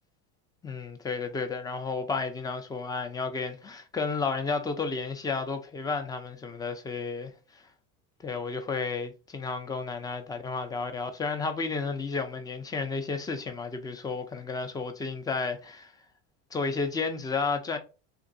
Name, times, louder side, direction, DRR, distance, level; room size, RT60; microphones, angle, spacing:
voice 1, 0.6-7.6 8.2-15.9 16.5-17.8, left 4 dB, 10° left, 0.4 m, -32 dB
3.5 x 2.9 x 2.6 m
supercardioid pair, 120°, 42 cm